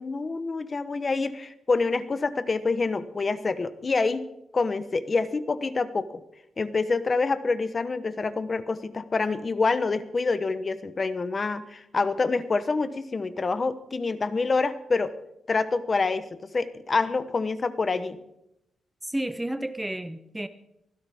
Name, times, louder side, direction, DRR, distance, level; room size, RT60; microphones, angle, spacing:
voice 1, 0.0-4.2 4.5-6.1 6.6-15.1 15.5-16.3 16.5-18.2, left 4 dB, 30° left, 12 dB, 0.9 m, -26 dB
voice 2, 19.0-20.5, right 1 dB, 5° right, 11 dB, 0.7 m, -31 dB
24.0 x 15.5 x 3.6 m, 0.82 s
wide cardioid pair, 145°, 0 cm